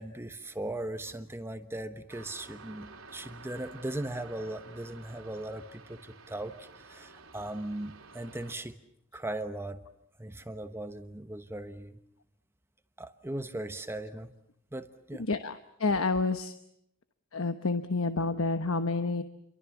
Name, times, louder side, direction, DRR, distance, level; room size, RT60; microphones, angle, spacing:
voice 1, 0.0-8.8 9.1-9.8 10.2-12.0 13.0-14.3 14.7-15.3, right 1 dB, 10° right, 9 dB, 1.1 m, -38 dB
sound 1, 2.1-8.5, right 4 dB, 85° right, 3.4 m, -51 dB
voice 2, 15.2-16.5 17.3-19.2, left 3 dB, 90° left, 9 dB, 1.1 m, -29 dB
29.5 x 23.5 x 7.2 m, 0.73 s
head